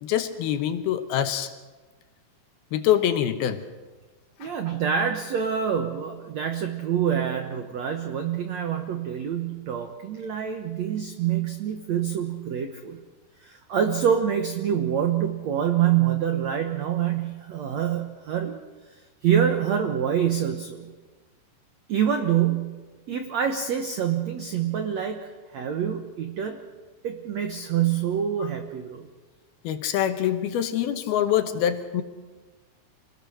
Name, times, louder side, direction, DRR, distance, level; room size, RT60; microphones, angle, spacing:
voice 1, 0.0-1.5 2.7-3.6 4.4-4.5 28.4-28.5 29.6-32.0, left 10 dB, 70° left, 8 dB, 2.7 m, -25 dB
voice 2, 4.4-13.0 13.4-18.6 19.2-20.9 21.9-22.8 23.1-25.3 25.5-26.6 27.0-29.1, right 9 dB, 80° right, 6 dB, 1.5 m, -26 dB
26.5 x 20.0 x 6.5 m, 1.3 s
omnidirectional pair, 4.9 m